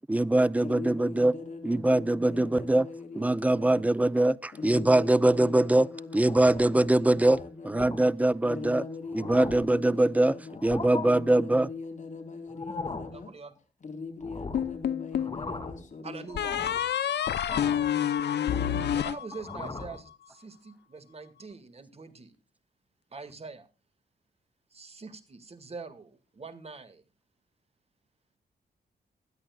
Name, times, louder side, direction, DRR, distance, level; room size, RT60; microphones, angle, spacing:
voice 1, 0.1-1.3 1.6-2.8 3.2-5.9 6.1-8.8 9.1-10.4 10.6-11.7, right 1 dB, 10° right, 0.5 m, -23 dB
voice 2, 0.6-3.8 4.5-7.9 8.4-10.6 11.1-13.3 13.8-16.3 18.4-18.9, left 4 dB, 45° left, 4.1 m, -41 dB
sound 1, 6.2-6.7 7.2-7.4 7.8-8.0 8.6-8.7 9.0-9.7 10.5-11.1 12.5-13.2 14.2-14.8 15.1-15.9 16.3-16.9 17.5-17.9 18.3-19.0 19.3-20.0, left 3 dB, 30° left, 3.0 m, -39 dB
voice 3, 13.1-13.5 16.0-16.6 18.9-22.4 23.1-23.7 24.7-27.0, right 4 dB, 35° right, 2.1 m, -44 dB
sound 2, 14.5-15.4 16.4-19.8, left 9 dB, 85° left, 0.8 m, -28 dB
20.0 x 13.0 x 2.4 m
wide cardioid pair, 115°, 17 cm